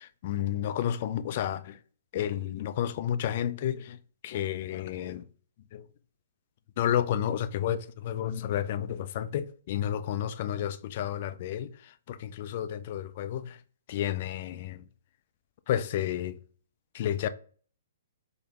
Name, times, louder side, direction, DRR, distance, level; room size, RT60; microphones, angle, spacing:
voice 1, 0.0-1.8 2.1-4.0 4.2-5.3 5.7-5.8 6.8-13.6 13.9-14.8 15.7-16.4 16.9-17.3, left 10 dB, 45° left, 0.3 m, -31 dB
3.4 x 2.0 x 3.4 m
figure-of-eight pair, 120°, 0 cm